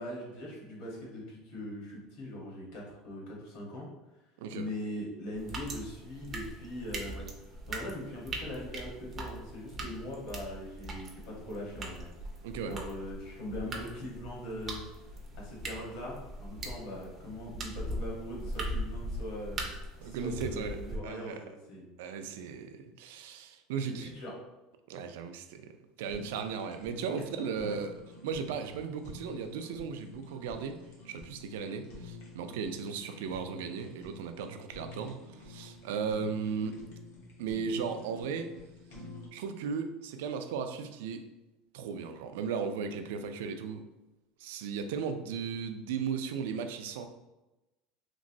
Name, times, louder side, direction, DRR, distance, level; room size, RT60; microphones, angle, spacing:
voice 1, 0.0-3.9 4.5-7.3 7.7-12.1 12.6-14.8 15.4-19.7 20.0-21.9 24.0-24.3 27.6-27.8, left 1 dB, 55° left, -3 dB, 1.0 m, -41 dB
voice 2, 4.4-4.7 12.4-12.8 20.0-20.8 21.0-21.4 22.0-24.1 24.9-25.7 26.0-27.9 28.2-30.8 31.0-36.8 37.4-38.5 39.3-41.2 41.7-43.8 44.4-47.1, right 6 dB, 90° right, 7 dB, 0.3 m, -36 dB
sound 1, 5.3-21.0, right 1 dB, 20° right, 0.4 m, -41 dB
Fire, 26.0-39.3, left 2 dB, 75° left, 1.0 m, -49 dB
3.0 x 2.9 x 2.6 m, 1.0 s
cardioid pair, 175°, 0 cm